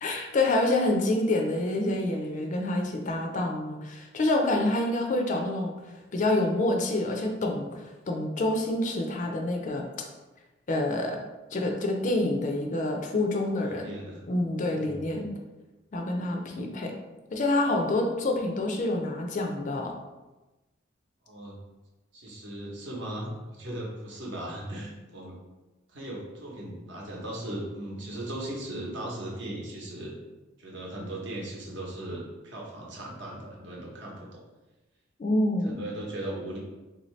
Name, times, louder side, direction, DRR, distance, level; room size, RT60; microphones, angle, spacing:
voice 1, 0.0-5.7 6.1-9.9 10.7-11.2 11.5-13.9 14.3-15.3 15.9-16.9 17.3-19.9 35.2-35.8, left 2 dB, 40° left, 2 dB, 0.4 m, -27 dB
voice 2, 13.6-14.2 14.7-15.3 21.2-21.6 22.1-25.4 25.9-30.1 30.6-34.4 35.6-36.6, right 1 dB, 60° right, -2 dB, 0.9 m, -38 dB
3.5 x 2.7 x 3.1 m, 1.1 s
head